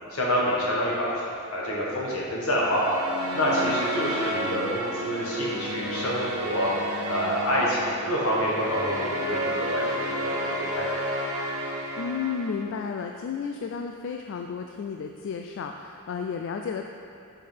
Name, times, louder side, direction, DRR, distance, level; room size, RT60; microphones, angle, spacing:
voice 1, 0.1-3.0 3.3-6.7 7.1-10.8, equal, 75° left, -5 dB, 1.6 m, -27 dB
sound 1, 2.4-12.8, equal, 90° right, 0.9 m, -31 dB
voice 2, 12.0-16.9, left 6 dB, 55° left, 4 dB, 0.3 m, -32 dB
5.7 x 5.2 x 5.2 m, 2.6 s
head